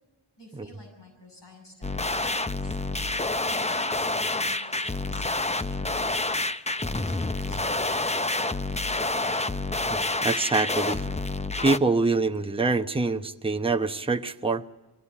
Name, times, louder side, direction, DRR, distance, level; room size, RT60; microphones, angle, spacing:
voice 1, 0.4-6.2 6.9-7.9 8.2-9.1, left 1 dB, 75° left, 0 dB, 7.6 m, -50 dB
sound 1, 1.8-11.8, left 2 dB, 15° left, 0.7 m, -28 dB
voice 2, 9.9-11.0 11.6-14.6, right 3 dB, 15° right, 5 dB, 0.9 m, -25 dB
23.5 x 16.5 x 9.9 m, 1.2 s
wide cardioid pair, 55°, 42 cm